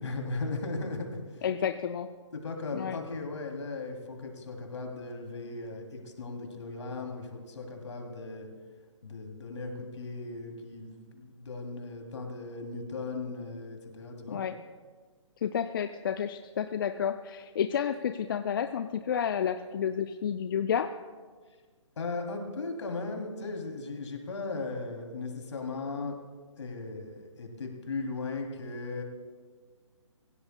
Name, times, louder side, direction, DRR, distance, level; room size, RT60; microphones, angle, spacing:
voice 1, 0.0-1.4 2.3-8.5 9.0-14.4 22.0-26.2 26.6-29.0, left 3 dB, 60° left, 3 dB, 2.8 m, -37 dB
voice 2, 1.4-2.1 2.7-3.0 14.3-14.6 15.4-20.9, left 8 dB, 40° left, 9 dB, 0.5 m, -30 dB
26.0 x 16.5 x 2.2 m, 1.5 s
figure-of-eight pair, 140°, 17 cm